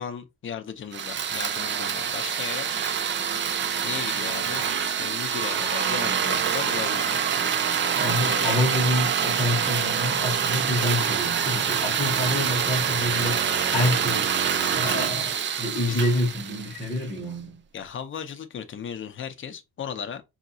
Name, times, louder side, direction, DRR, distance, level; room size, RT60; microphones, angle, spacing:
voice 1, 0.0-2.7 3.8-7.2 8.2-8.6 14.8-15.1 15.8-16.0 17.7-20.2, left 8 dB, 30° left, 0.6 m, -36 dB
sound 1, 0.9-17.1, right 7 dB, 30° right, 0.4 m, -26 dB
voice 2, 8.0-14.3 14.7-17.6, left 1 dB, 10° left, 0.9 m, -27 dB
5.8 x 2.9 x 2.6 m
cardioid pair, 175°, 39 cm